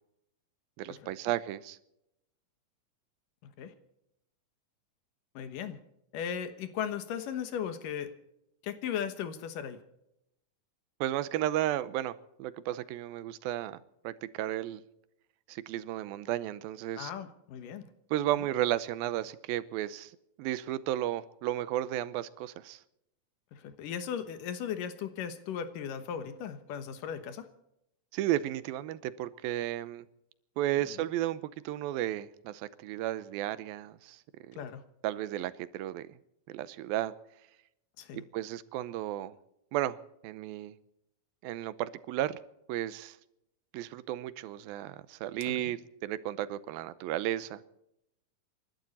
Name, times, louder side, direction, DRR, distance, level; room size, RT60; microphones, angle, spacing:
voice 1, 0.8-1.8 11.0-13.8 14.0-14.8 15.5-17.1 18.1-20.1 20.4-22.8 28.1-30.1 30.6-34.2 34.5-34.6 35.0-36.1 36.5-37.1 38.1-39.3 39.7-40.0 40.2-40.7 41.4-42.4 42.7-43.2 43.7-47.6, right 13 dB, 85° right, 2.6 m, -33 dB
voice 2, 3.4-3.7 5.4-5.8 6.1-8.1 8.6-9.8 17.0-17.9 23.5-27.5 31.0-31.1 34.6-34.8 38.0-38.2 45.4-45.7, left 8 dB, 70° left, 2.7 m, -37 dB
28.0 x 12.0 x 4.2 m
omnidirectional pair, 4.1 m